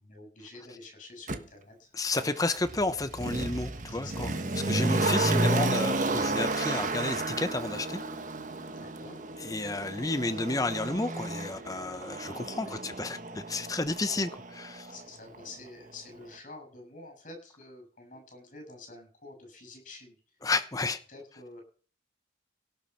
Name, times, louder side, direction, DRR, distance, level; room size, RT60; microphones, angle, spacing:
voice 1, 0.0-1.9 3.9-4.2 8.7-9.2 12.6-13.0 14.9-20.4 21.1-21.6, left 2 dB, 45° left, 7.5 m, -48 dB
Motor vehicle (road), 1.3-1.4 2.1-15.0 15.3-15.4, right 2 dB, 45° right, 1.3 m, -32 dB
voice 2, 2.0-4.3 4.6-8.0 9.4-14.9 20.4-21.0, left 2 dB, 20° left, 0.8 m, -31 dB
17.5 x 7.3 x 5.7 m
head